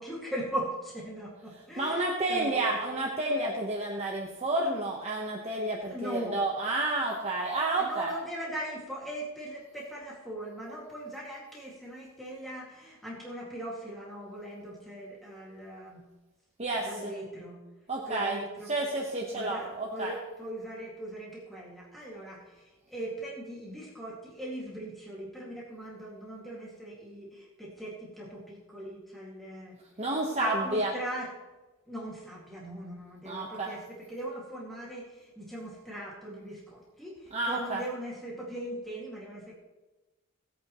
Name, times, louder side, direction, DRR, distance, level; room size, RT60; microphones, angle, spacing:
voice 1, 0.0-2.8 5.9-6.4 7.8-16.1 16.8-17.6 18.1-18.7 19.3-29.8 30.4-31.3 31.9-39.5, right 1 dB, ahead, -5 dB, 2.2 m, -40 dB
voice 2, 1.8-8.2 16.6-17.1 17.9-18.4 18.6-20.2 30.0-31.0 33.2-33.7 37.3-37.8, right 2 dB, 30° right, -2 dB, 1.2 m, -30 dB
18.0 x 8.6 x 3.1 m, 1.1 s
head